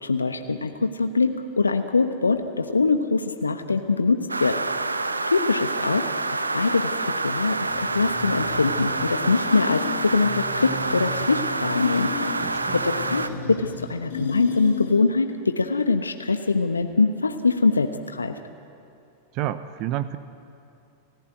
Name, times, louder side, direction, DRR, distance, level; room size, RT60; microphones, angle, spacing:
voice 1, 0.0-4.6 5.3-12.1 12.7-18.4, left 4 dB, 75° left, 8 dB, 1.0 m, -23 dB
sound 1, 4.3-13.3, right 3 dB, 80° right, 0.9 m, -27 dB
sound 2, 7.7-15.2, left 5 dB, 60° left, 2.4 m, -34 dB
voice 2, 12.4-12.8 19.3-20.2, right 13 dB, 40° right, 14 dB, 0.8 m, -29 dB
30.0 x 15.5 x 9.2 m, 2.6 s
figure-of-eight pair, 90°, 0 cm